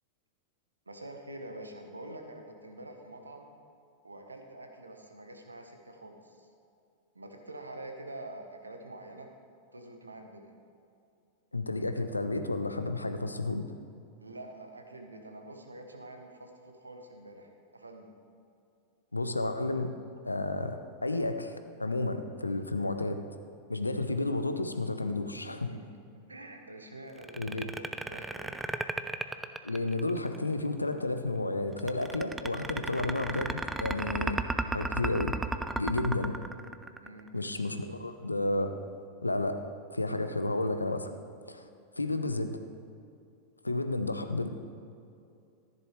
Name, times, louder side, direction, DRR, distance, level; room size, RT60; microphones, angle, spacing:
voice 1, 0.9-3.5 4.0-6.5 7.1-9.3 9.7-10.5 14.2-18.1 25.3-25.8 26.3-28.6 35.9-36.0 37.0-37.3, right 1 dB, 80° right, 4 dB, 1.1 m, -46 dB
voice 2, 11.5-13.7 19.1-19.9 20.3-23.2 23.7-25.7 27.4-27.7 29.6-35.3 35.8-36.4 37.3-38.7 39.2-39.6 39.9-41.1 41.5-41.7 42.0-42.6 43.6-44.6, left 2 dB, 85° left, 8 dB, 0.6 m, -31 dB
sound 1, 27.2-30.4 31.8-37.3, right 2 dB, 10° right, 0.4 m, -34 dB
14.0 x 10.5 x 3.3 m, 2.5 s
figure-of-eight pair, 90°, 0 cm